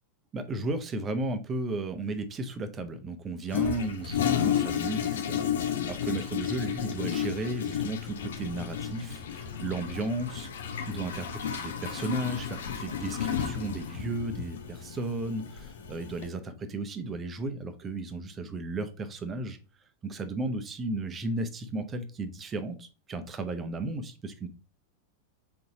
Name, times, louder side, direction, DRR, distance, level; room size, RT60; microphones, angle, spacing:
voice 1, 0.3-19.6 20.0-24.5, right 2 dB, 25° right, 9 dB, 0.7 m, -34 dB
Toilet flush, 3.5-16.3, left 9 dB, 60° left, 0.6 m, -32 dB
4.4 x 3.9 x 2.8 m, 0.36 s
figure-of-eight pair, 90°, 0 cm